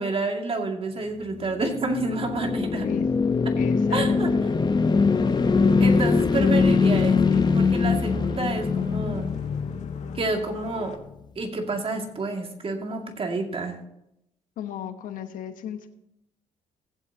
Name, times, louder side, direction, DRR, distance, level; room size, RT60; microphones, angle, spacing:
voice 1, 0.0-2.9 3.5-3.6 3.9-4.3 5.8-9.3 10.1-11.0 11.4-13.8, right 3 dB, 45° right, 3 dB, 2.3 m, -29 dB
sound 1, 1.4-10.7, left 4 dB, 30° left, 1.0 m, -22 dB
voice 2, 3.6-4.1 4.3-4.4 6.3-6.7 14.6-15.9, left 10 dB, 75° left, 8 dB, 1.1 m, -35 dB
sound 2, 4.4-11.0, left 7 dB, 60° left, 1.4 m, -39 dB
18.5 x 7.9 x 2.9 m, 0.81 s
supercardioid pair, 60°, 14 cm